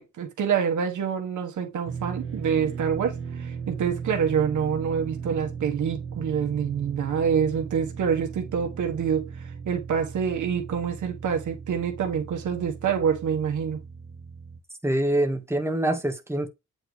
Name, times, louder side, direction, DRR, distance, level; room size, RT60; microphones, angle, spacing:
voice 1, 0.0-13.8, right 7 dB, 85° right, 1.4 m, -26 dB
sound 1, 1.9-14.6, right 6 dB, 45° right, 1.4 m, -37 dB
voice 2, 14.8-16.5, right 1 dB, 10° right, 1.5 m, -25 dB
8.6 x 3.6 x 3.2 m
cardioid pair, 75°, 30 cm